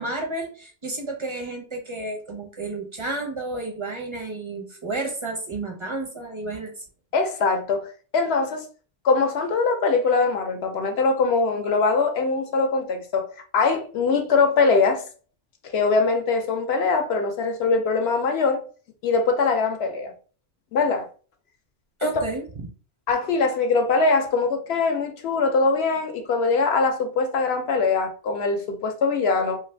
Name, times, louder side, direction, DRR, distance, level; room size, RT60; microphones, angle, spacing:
voice 1, 0.0-6.8 22.0-22.4, right 2 dB, 40° right, 0.4 m, -31 dB
voice 2, 7.1-7.9 8.1-8.6 9.0-15.0 15.7-18.6 19.0-20.1 20.7-21.1 22.0-22.1 23.1-29.6, left 4 dB, 70° left, 0.8 m, -22 dB
2.6 x 2.4 x 3.2 m
omnidirectional pair, 1.1 m